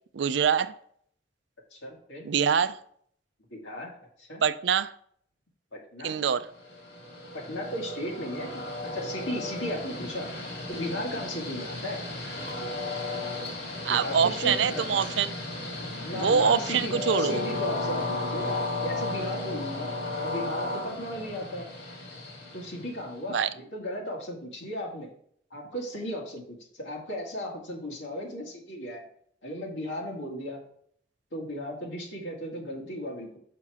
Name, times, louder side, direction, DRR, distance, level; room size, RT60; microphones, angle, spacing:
voice 1, 0.1-0.7 2.3-2.8 4.4-4.9 6.0-6.5 13.8-15.3 16.1-17.4 23.3-23.5, right 7 dB, 75° right, 0.4 m, -24 dB
voice 2, 1.7-2.3 3.5-3.9 4.2-4.4 5.7-6.2 7.3-10.3 10.7-12.1 13.9-15.0 16.0-19.9 20.2-21.7 22.5-25.1 25.5-29.0 29.4-30.6 31.3-33.4, equal, 85° left, 2.1 m, -36 dB
Train, 6.6-23.3, left 2 dB, 60° left, 2.0 m, -34 dB
5.8 x 5.6 x 4.8 m
head